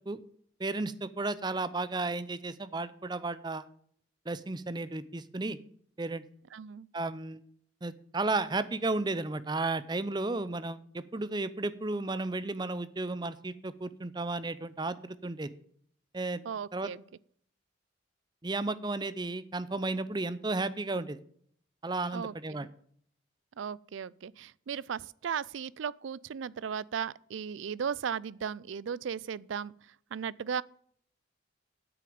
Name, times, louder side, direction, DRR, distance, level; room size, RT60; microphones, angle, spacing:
voice 1, 0.6-3.7 4.3-5.6 6.0-6.2 6.9-7.4 7.8-15.5 16.1-16.4 16.7-16.9 18.4-21.2 21.8-22.7, right 2 dB, 20° right, 0.6 m, -33 dB
voice 2, 6.5-6.9 16.4-17.0 22.1-22.7 23.6-29.7 30.1-30.6, right 7 dB, 75° right, 0.4 m, -36 dB
8.7 x 6.6 x 8.5 m
head